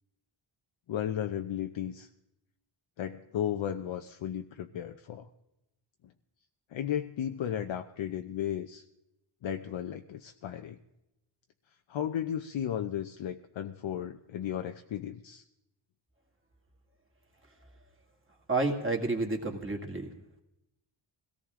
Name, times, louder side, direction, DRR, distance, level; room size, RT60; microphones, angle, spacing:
voice 1, 0.9-2.1 3.0-5.3 6.7-8.8 9.4-10.8 11.9-15.4, left 10 dB, 70° left, 6 dB, 0.8 m, -34 dB
voice 2, 18.5-20.1, right 3 dB, 25° right, 2 dB, 2.2 m, -30 dB
22.0 x 17.5 x 3.7 m, 0.87 s
wide cardioid pair, 160°, 49 cm